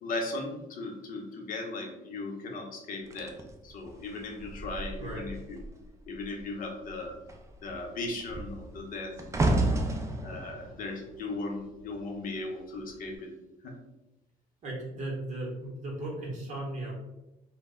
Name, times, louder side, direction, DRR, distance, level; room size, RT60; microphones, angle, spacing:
voice 1, 0.0-3.3 3.6-5.6 6.1-7.2 7.6-9.2 10.2-13.3 13.6-13.8, left 2 dB, 55° left, 2 dB, 0.7 m, -37 dB
sound 1, 3.1-5.8 6.1-6.5 6.8-12.1 12.9-13.1, right 2 dB, 20° right, 0.3 m, -32 dB
voice 2, 14.6-16.9, right 1 dB, 50° right, -2 dB, 0.8 m, -36 dB
2.1 x 2.0 x 3.6 m, 0.94 s
cardioid pair, 95°, 16 cm